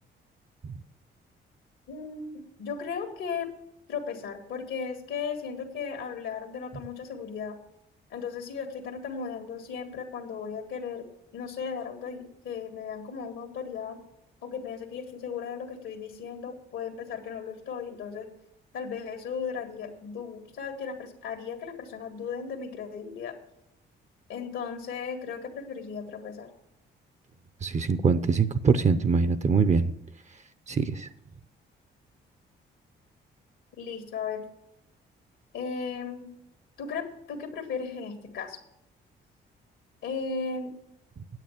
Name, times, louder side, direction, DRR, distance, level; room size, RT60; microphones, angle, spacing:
voice 1, 1.9-3.5 3.9-7.6 8.1-14.0 14.4-18.3 18.7-23.4 24.3-26.5 33.8-34.4 35.5-36.3 36.8-38.6 40.0-40.7, left 6 dB, 80° left, 5 dB, 1.8 m, -36 dB
voice 2, 27.6-29.9 30.7-31.1, right 5 dB, 35° right, 12 dB, 0.7 m, -23 dB
9.2 x 8.2 x 7.2 m, 0.80 s
cardioid pair, 90°, 20 cm